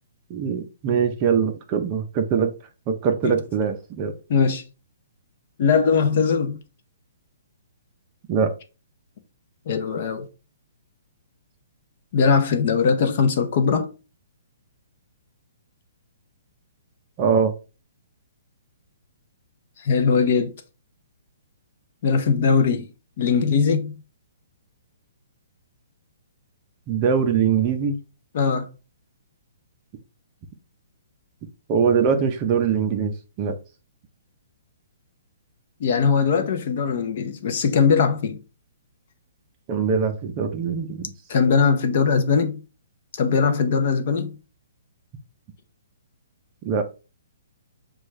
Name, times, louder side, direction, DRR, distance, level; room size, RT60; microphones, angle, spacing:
voice 1, 0.3-2.5 2.9-4.1 8.3-8.5 17.2-17.5 26.9-28.0 31.7-33.1 33.4-33.6 39.7-41.1 46.6-46.8, right 6 dB, 25° right, 0.5 m, -22 dB
voice 2, 4.3-4.6 5.6-6.6 9.7-10.3 12.1-13.9 19.8-20.5 22.0-22.9 23.2-24.0 28.3-28.7 35.8-38.4 41.3-42.6 43.2-44.3, left 5 dB, 40° left, 0.6 m, -20 dB
6.2 x 2.3 x 3.1 m
hypercardioid pair, 170°, 0 cm